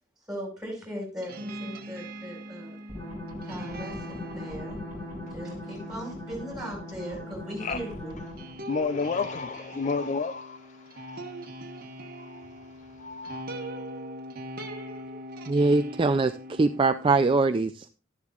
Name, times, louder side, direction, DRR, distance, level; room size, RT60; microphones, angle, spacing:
voice 1, 0.3-2.8 3.3-4.8 5.3-8.1 10.1-10.2, equal, 5° right, 5.5 m, -38 dB
sound 1, 1.2-17.2, right 1 dB, 50° right, 1.2 m, -42 dB
sound 2, 2.9-8.6, left 1 dB, 20° left, 4.2 m, -39 dB
voice 2, 8.6-11.6 12.1-13.5, left 4 dB, 40° left, 0.4 m, -32 dB
voice 3, 15.5-17.9, right 3 dB, 25° right, 0.3 m, -23 dB
12.5 x 11.0 x 2.4 m
head